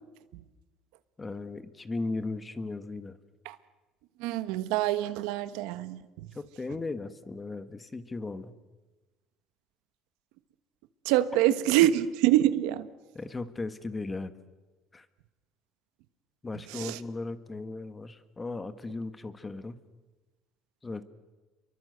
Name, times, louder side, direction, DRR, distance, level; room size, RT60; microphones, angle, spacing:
voice 1, 1.2-3.2 6.3-8.5 13.1-14.3 14.9-15.0 16.4-19.8 20.8-21.0, left 3 dB, 15° left, 12 dB, 1.5 m, -36 dB
voice 2, 4.2-6.0 11.0-12.8 16.7-17.0, right 13 dB, 85° right, 13 dB, 1.3 m, -25 dB
28.5 x 23.5 x 8.0 m, 1.2 s
cardioid pair, 130°, 0 cm